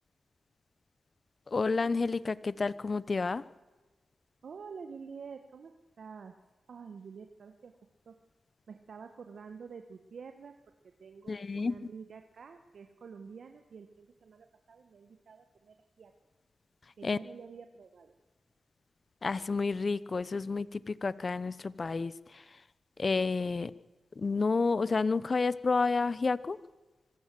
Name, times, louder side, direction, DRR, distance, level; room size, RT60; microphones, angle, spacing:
voice 1, 1.5-3.4 11.3-11.7 17.0-17.2 19.2-22.4 23.0-23.7 24.2-26.6, left 4 dB, 50° left, 18 dB, 0.9 m, -30 dB
voice 2, 4.4-6.4 6.7-7.8 8.1-8.2 8.7-10.5 11.0-16.1 16.9-18.1, right 5 dB, 70° right, 7 dB, 1.4 m, -48 dB
25.0 x 15.0 x 7.7 m, 1.2 s
cardioid pair, 45°, 0 cm